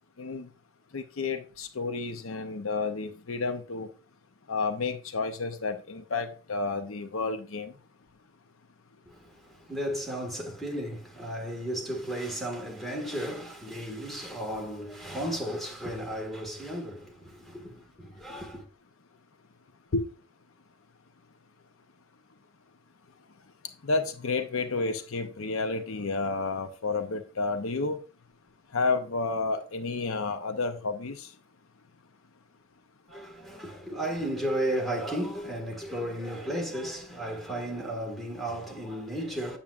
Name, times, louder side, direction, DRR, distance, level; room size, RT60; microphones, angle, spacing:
voice 1, 0.2-0.5 0.9-3.9 4.5-7.7 19.9-20.0 23.8-28.0 28.7-31.3, left 3 dB, 65° left, 0.7 m, -30 dB
voice 2, 9.0-18.6 33.1-39.6, right 1 dB, ahead, 1.7 m, -34 dB
8.8 x 7.1 x 2.4 m
head